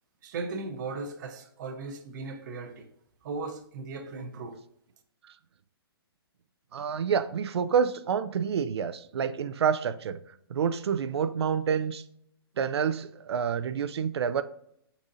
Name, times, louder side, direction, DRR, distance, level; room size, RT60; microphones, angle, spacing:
voice 1, 0.2-2.9 3.2-4.6, right 3 dB, 50° right, 0.7 m, -37 dB
voice 2, 6.7-10.2 10.5-12.0 12.6-14.4, right 7 dB, 85° right, 0.4 m, -28 dB
4.9 x 4.1 x 2.5 m
hypercardioid pair, 155°, 13 cm